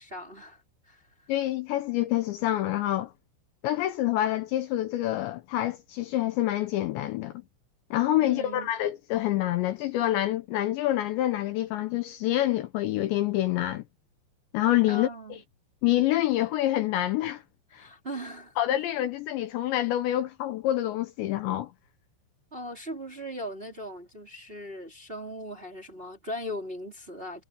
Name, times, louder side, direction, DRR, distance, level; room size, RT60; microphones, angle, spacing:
voice 1, 0.0-1.3 8.2-8.7 14.9-15.4 17.7-18.5 22.5-27.4, equal, 15° right, 2.6 m, -39 dB
voice 2, 1.3-3.1 3.6-7.3 7.9-13.8 14.5-15.1 15.8-17.4 17.7-17.9 18.6-21.7, left 14 dB, 75° left, 2.9 m, -27 dB
omnidirectional pair, 5.7 m